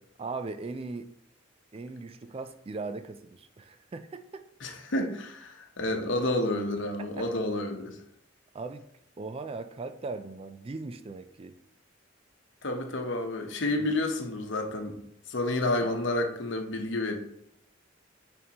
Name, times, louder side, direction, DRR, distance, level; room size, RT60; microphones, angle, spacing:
voice 1, 0.2-1.1 1.7-4.4 7.0-7.3 8.5-8.9 9.2-11.5 13.8-13.9, right 3 dB, 30° right, 10 dB, 0.3 m, -39 dB
voice 2, 4.6-8.0 12.6-15.0 15.3-17.2, left 2 dB, 65° left, 4 dB, 0.9 m, -30 dB
9.4 x 3.6 x 2.9 m, 0.77 s
head